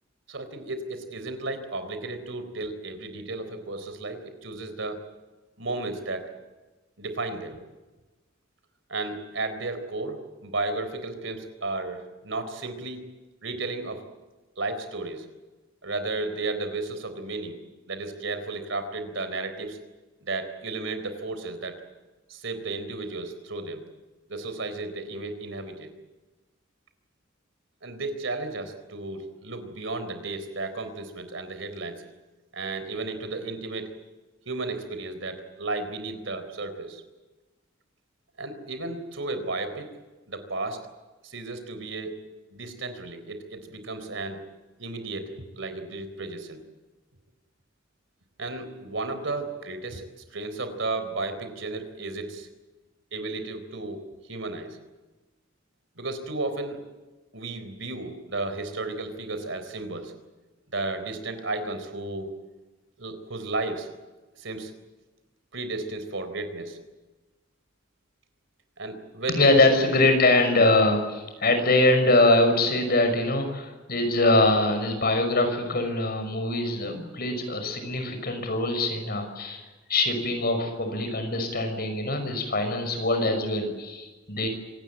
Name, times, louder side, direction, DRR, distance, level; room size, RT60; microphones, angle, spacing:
voice 1, 0.3-5.0 5.6-6.3 7.0-7.6 8.9-13.0 13.4-14.1 14.6-15.3 15.8-17.6 17.9-19.8 20.2-21.8 22.3-23.8 24.3-25.9 27.8-32.1 32.5-33.9 34.5-37.0 38.4-39.9 40.3-40.8 41.2-42.1 42.5-44.4 44.8-46.6 48.4-52.5 53.1-54.8 56.0-56.8 57.3-60.1 60.7-62.3 63.0-63.9 64.4-64.7 65.5-66.8 68.8-69.9, right 2 dB, 70° right, 9 dB, 4.0 m, -33 dB
voice 2, 69.4-79.6 79.9-84.5, left 2 dB, 50° left, 6 dB, 5.9 m, -23 dB
25.5 x 18.5 x 8.9 m, 1.2 s
head